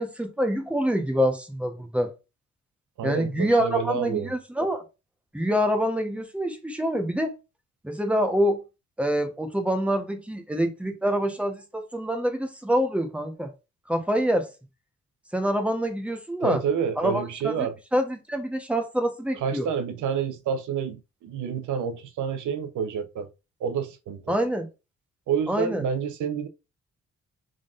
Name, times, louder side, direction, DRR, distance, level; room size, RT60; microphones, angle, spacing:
voice 1, 0.0-2.1 3.0-4.8 5.3-7.3 7.8-8.6 9.0-13.5 13.9-14.5 15.3-16.6 17.0-17.7 17.9-19.7 24.3-24.7 25.5-25.8, equal, 5° right, 1.0 m, -26 dB
voice 2, 3.0-4.3 16.4-17.8 19.3-23.3 23.6-24.3 25.3-26.5, right 7 dB, 85° right, 0.8 m, -28 dB
3.8 x 3.6 x 2.5 m
cardioid pair, 110°, 29 cm